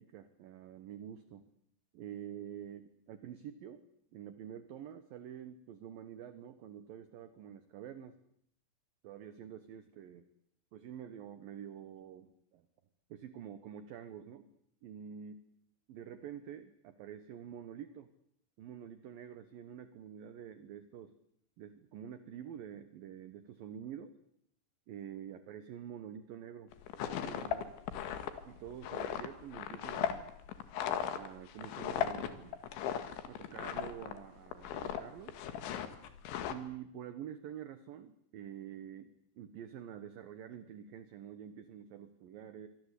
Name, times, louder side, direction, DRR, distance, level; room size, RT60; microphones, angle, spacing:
voice 1, 0.0-1.4 1.9-3.8 4.1-8.2 9.0-10.3 10.7-12.7 13.1-14.5 14.8-15.3 15.9-18.1 18.6-21.1 21.6-24.2 24.9-27.7 28.5-30.3 30.8-32.5 33.3-35.4 36.5-42.7, right 9 dB, 65° right, 11 dB, 2.6 m, -47 dB
sound 1, 26.7-34.2 34.5-35.0 35.3-36.6, left 9 dB, 85° left, 4.3 m, -37 dB
26.5 x 24.0 x 8.4 m, 0.70 s
omnidirectional pair, 5.2 m